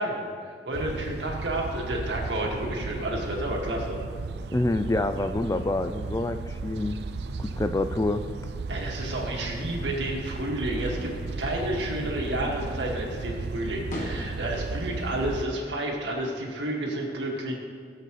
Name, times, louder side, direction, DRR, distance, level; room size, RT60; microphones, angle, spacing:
voice 1, 0.0-4.0 8.7-17.5, right 1 dB, 90° right, -1 dB, 2.0 m, -31 dB
sound 1, 0.7-15.5, right 3 dB, 70° right, 0.5 m, -35 dB
voice 2, 4.5-7.0 7.4-8.2, left 2 dB, 20° left, 10 dB, 0.3 m, -27 dB
sound 2, 10.5-13.2 13.5-14.8, left 1 dB, 45° left, 1.3 m, -42 dB
17.5 x 7.8 x 3.2 m, 2.2 s
head